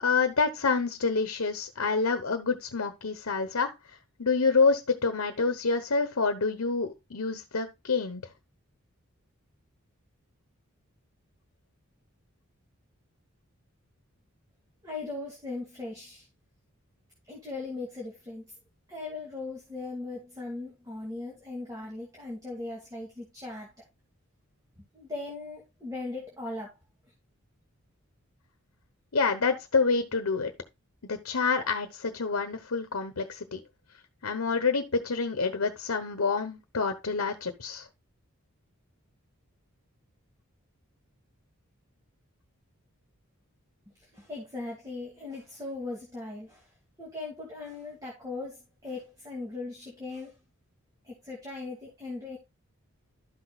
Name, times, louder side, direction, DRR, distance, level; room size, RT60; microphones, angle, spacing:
voice 1, 0.0-3.7 4.2-8.2 29.1-30.5 31.0-33.6 34.2-37.8, left 4 dB, 75° left, 1.1 m, -27 dB
voice 2, 14.8-16.3 17.3-18.5 18.9-23.7 24.8-26.7 44.1-46.7 47.0-50.3 51.0-52.4, left 3 dB, 15° right, 2.2 m, -39 dB
12.5 x 6.2 x 2.4 m
head